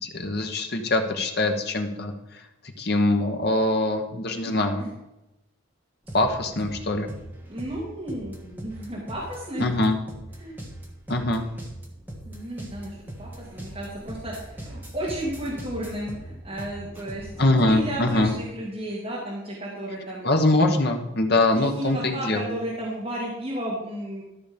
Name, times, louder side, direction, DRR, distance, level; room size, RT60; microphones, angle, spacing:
voice 1, 0.0-2.1 2.8-4.8 6.1-7.1 9.6-10.0 11.1-11.5 17.4-18.3 20.2-22.5, left 2 dB, 50° left, 5 dB, 1.3 m, -23 dB
sound 1, 6.1-18.3, right 1 dB, 10° right, 1.7 m, -40 dB
voice 2, 7.5-9.7 10.4-10.6 12.3-20.3 21.5-24.2, right 1 dB, 30° right, -6 dB, 2.3 m, -33 dB
13.5 x 6.2 x 5.2 m, 0.93 s
head